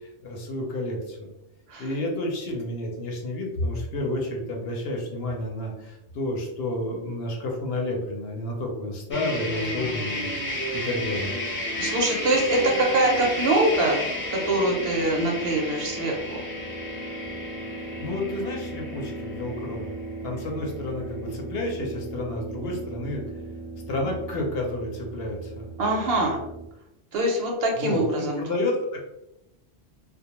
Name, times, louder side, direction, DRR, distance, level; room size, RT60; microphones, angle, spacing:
voice 1, 0.0-1.3 1.8-11.4 17.7-19.9 20.2-23.2 23.9-25.7 27.8-29.0, left 1 dB, 65° left, 0 dB, 0.8 m, -30 dB
sound 1, 9.1-26.6, equal, 15° left, 0.4 m, -33 dB
voice 2, 11.8-16.3 25.8-26.4 27.1-28.4, right 1 dB, 65° right, 0 dB, 0.8 m, -24 dB
2.2 x 2.1 x 2.9 m, 0.89 s
omnidirectional pair, 1.2 m